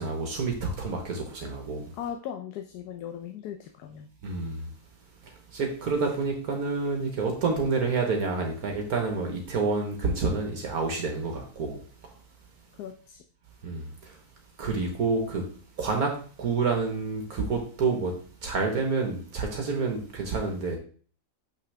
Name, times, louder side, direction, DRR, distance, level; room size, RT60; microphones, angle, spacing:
voice 1, 0.0-1.8 4.2-4.7 5.2-12.1 13.6-14.2 14.6-15.4 15.8-16.1 16.4-18.1 18.4-20.8, right 4 dB, 70° right, 1.6 m, -28 dB
voice 2, 1.9-4.1 5.9-6.0 12.8-13.2, left 9 dB, 80° left, 1.2 m, -38 dB
6.5 x 6.0 x 3.3 m
omnidirectional pair, 1.7 m